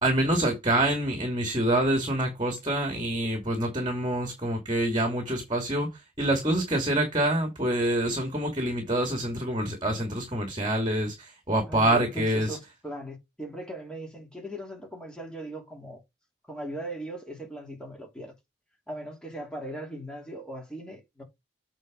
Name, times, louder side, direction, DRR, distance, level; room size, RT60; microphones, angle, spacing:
voice 1, 0.0-5.9 6.2-12.6, right 1 dB, 25° right, 2.3 m, -26 dB
voice 2, 11.7-16.0 16.5-18.3 18.9-21.2, right 1 dB, 5° left, 3.2 m, -39 dB
8.3 x 4.3 x 5.0 m
head